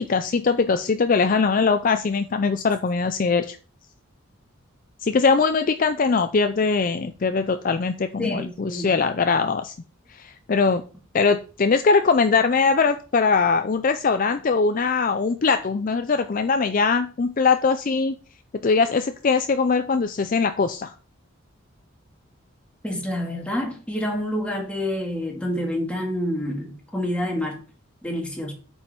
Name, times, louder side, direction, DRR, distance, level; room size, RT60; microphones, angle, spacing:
voice 1, 0.0-3.6 5.0-9.7 10.1-10.8 11.1-18.1 18.6-20.9, left 4 dB, 40° left, 9 dB, 0.4 m, -21 dB
voice 2, 8.2-9.0 22.8-27.6 28.0-28.5, left 1 dB, 5° left, -1 dB, 2.3 m, -28 dB
8.7 x 5.5 x 4.4 m, 0.38 s
head